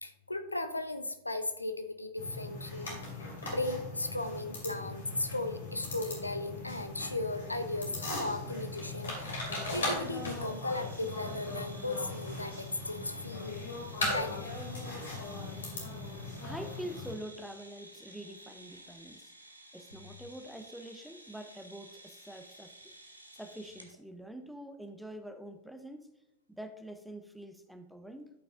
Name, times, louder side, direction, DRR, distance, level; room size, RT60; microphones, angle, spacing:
voice 1, 0.0-3.0 3.5-9.4 9.7-13.6 14.1-14.5, left 2 dB, 85° left, 9 dB, 0.6 m, -36 dB
sound 1, 2.2-17.1, left 2 dB, 70° left, 2.6 m, -39 dB
sound 2, 9.5-23.9, right 1 dB, 90° right, 0.9 m, -54 dB
voice 2, 16.4-19.3 19.7-22.7 23.3-26.1 26.5-28.3, right 1 dB, ahead, 7 dB, 0.8 m, -45 dB
12.5 x 5.7 x 2.6 m, 0.89 s
figure-of-eight pair, 90°, 0 cm